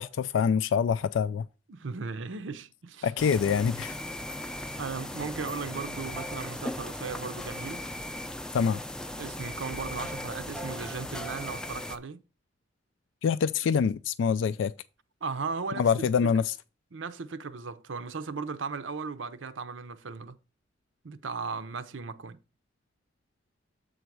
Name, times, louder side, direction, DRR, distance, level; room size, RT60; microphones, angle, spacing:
voice 1, 0.0-1.5 3.0-4.0 8.5-8.8 13.2-14.7 15.8-16.5, left 6 dB, 80° left, 0.3 m, -25 dB
voice 2, 1.7-3.1 4.8-7.9 9.2-12.2 15.2-16.1 16.9-20.4 21.0-22.4, right 4 dB, 85° right, 0.7 m, -37 dB
sound 1, 3.2-12.0, left 1 dB, 5° left, 0.4 m, -37 dB
7.9 x 4.0 x 4.6 m
head